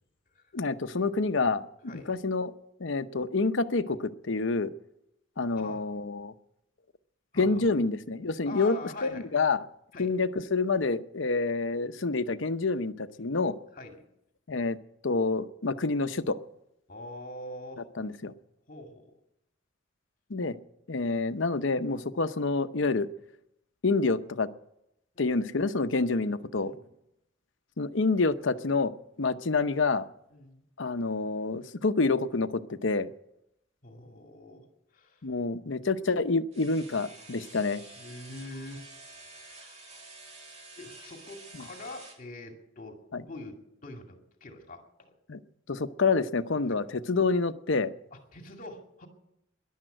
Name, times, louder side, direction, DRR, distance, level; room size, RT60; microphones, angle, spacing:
voice 1, 0.5-2.5 2.8-4.7 5.4-6.3 7.4-8.8 9.0-9.6 10.0-13.6 14.5-14.8 15.0-16.4 18.0-18.3 20.3-20.5 20.9-23.1 23.8-24.5 25.2-26.7 27.8-28.9 29.2-30.0 30.8-33.1 35.2-37.8 43.1-43.2 45.3-45.4 45.7-47.9, left 3 dB, 70° left, 10 dB, 0.8 m, -28 dB
voice 2, 1.9-2.2 5.6-5.9 7.3-7.7 8.5-9.3 9.9-10.1 13.7-14.0 16.9-17.8 18.7-19.2 25.1-25.4 26.5-26.9 30.3-30.6 33.8-35.3 37.9-38.9 39.3-39.8 40.8-43.0 43.3-45.1 46.7-46.8 48.1-49.1, left 2 dB, 45° left, 3 dB, 2.4 m, -44 dB
sound 1, 36.5-42.2, right 2 dB, 35° right, 2.3 m, -49 dB
14.0 x 11.0 x 9.0 m, 0.82 s
head